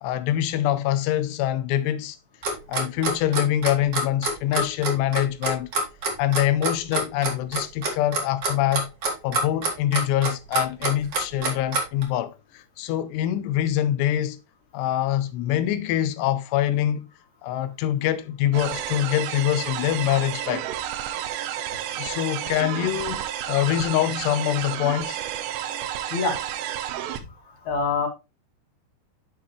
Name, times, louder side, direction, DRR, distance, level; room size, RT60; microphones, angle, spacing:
voice 1, 0.0-2.2 2.7-5.7 6.2-8.9 9.2-12.3 12.8-14.4 14.7-17.1 17.4-20.7 22.0-25.2, left 12 dB, 85° left, 2.7 m, -24 dB
Clock, 2.4-12.0, right 2 dB, 65° right, 1.0 m, -26 dB
sound 1, 18.5-27.2, right 11 dB, 85° right, 2.8 m, -31 dB
voice 2, 26.1-26.4 27.6-28.1, left 4 dB, 55° left, 2.5 m, -24 dB
7.6 x 6.1 x 3.1 m
omnidirectional pair, 4.9 m